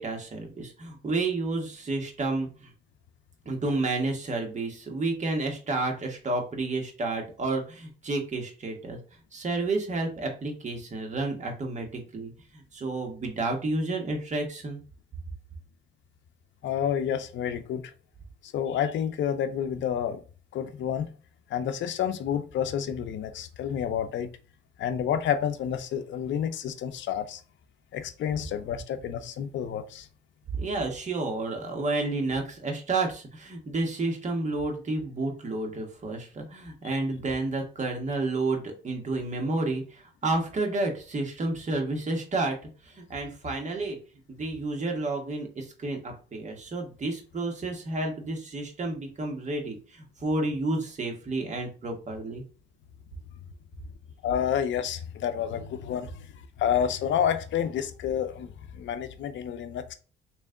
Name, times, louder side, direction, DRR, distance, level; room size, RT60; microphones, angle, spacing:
voice 1, 0.0-2.7 3.4-9.0 9.3-14.8 30.6-42.6 42.8-44.0 44.3-52.4, right 2 dB, 35° right, 1.3 m, -30 dB
voice 2, 16.6-17.9 18.4-20.2 20.5-21.1 21.5-24.3 24.8-27.4 27.9-30.1 54.2-56.3 56.6-59.9, left 9 dB, 70° left, 0.6 m, -29 dB
3.3 x 3.1 x 3.7 m
cardioid pair, 90°, 20 cm